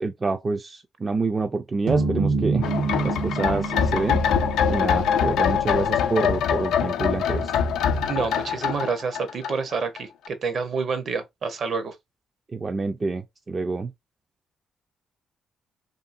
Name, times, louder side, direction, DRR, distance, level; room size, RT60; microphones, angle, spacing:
voice 1, 0.0-2.7 3.0-4.2 4.7-7.5 12.5-13.2 13.5-13.9, right 3 dB, 30° right, 0.3 m, -27 dB
sound 1, 1.9-6.2, right 4 dB, 90° right, 0.9 m, -28 dB
sound 2, 2.6-10.0 10.2-10.3, left 7 dB, 85° left, 0.4 m, -24 dB
voice 2, 8.1-12.0, right 5 dB, 55° right, 0.7 m, -28 dB
2.6 x 2.6 x 2.4 m
cardioid pair, 90°, 0 cm